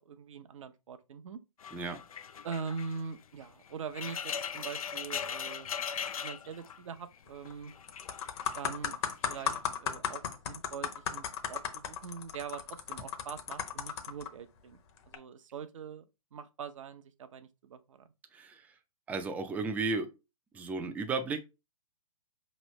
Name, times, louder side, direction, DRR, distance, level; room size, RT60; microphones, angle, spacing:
voice 1, 0.1-1.4 2.4-5.7 6.0-7.7 8.6-9.0 9.3-14.8 15.1-16.0 16.3-18.1, right 6 dB, 60° right, 0.7 m, -43 dB
sound 1, 1.6-7.2 7.5-8.6 9.2-9.6, left 7 dB, 75° left, 0.5 m, -40 dB
sound 2, 7.3-7.5 7.9-14.3 15.0-15.2, left 8 dB, 45° left, 0.9 m, -36 dB
voice 2, 18.3-18.7 19.1-20.1 20.5-21.4, right 3 dB, 10° right, 0.5 m, -34 dB
5.2 x 3.1 x 3.1 m
hypercardioid pair, 125°, 18 cm